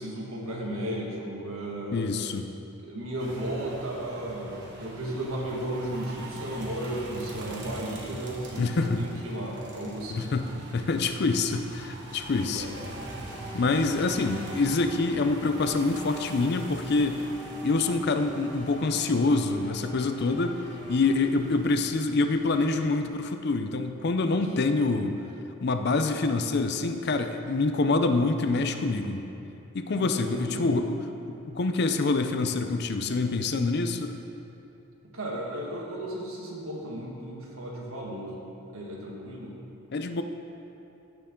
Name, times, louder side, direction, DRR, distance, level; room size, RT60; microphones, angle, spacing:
voice 1, 0.0-2.1 2.8-10.3 12.5-12.8 29.9-30.8 35.1-38.4 38.7-39.6, right 1 dB, 75° right, -2 dB, 1.7 m, -34 dB
voice 2, 1.9-2.5 8.6-9.0 10.1-10.5 10.7-12.7 13.5-17.2 17.6-20.6 20.9-25.1 25.6-29.2 29.7-31.0 31.5-34.2 39.9-40.2, left 3 dB, 50° left, 8 dB, 0.5 m, -26 dB
sound 1, 3.2-23.0, right 1 dB, 55° right, 1.3 m, -43 dB
sound 2, 12.8-21.2, right 1 dB, ahead, 1.8 m, -45 dB
15.0 x 6.7 x 3.8 m, 2.9 s
head